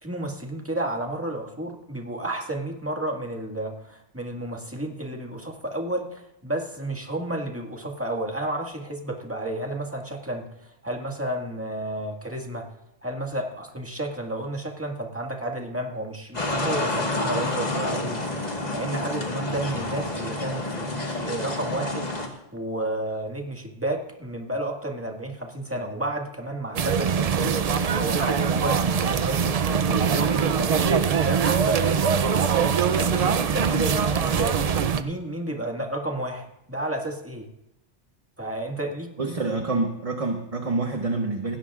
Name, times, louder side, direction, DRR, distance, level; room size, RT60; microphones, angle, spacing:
voice 1, 0.0-12.7 13.0-32.4 33.0-37.5 38.4-39.4, right 1 dB, 10° right, 1 dB, 1.8 m, -32 dB
sound 1, 16.3-22.3, left 2 dB, 35° left, 1.7 m, -29 dB
sound 2, 26.8-35.0, right 7 dB, 55° right, 0.4 m, -23 dB
voice 2, 39.2-41.6, right 3 dB, 30° right, 4 dB, 1.0 m, -27 dB
18.5 x 17.5 x 2.4 m, 0.88 s
omnidirectional pair, 1.2 m